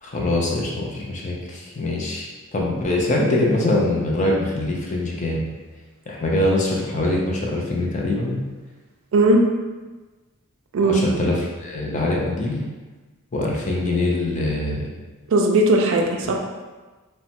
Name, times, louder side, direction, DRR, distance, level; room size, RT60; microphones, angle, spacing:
voice 1, 0.0-5.4 6.1-8.4 10.8-12.6 13.3-14.9, left 2 dB, 35° left, -2 dB, 0.4 m, -23 dB
voice 2, 15.3-16.3, right 2 dB, 60° right, 2 dB, 0.3 m, -17 dB
3.0 x 2.1 x 2.8 m, 1.3 s
head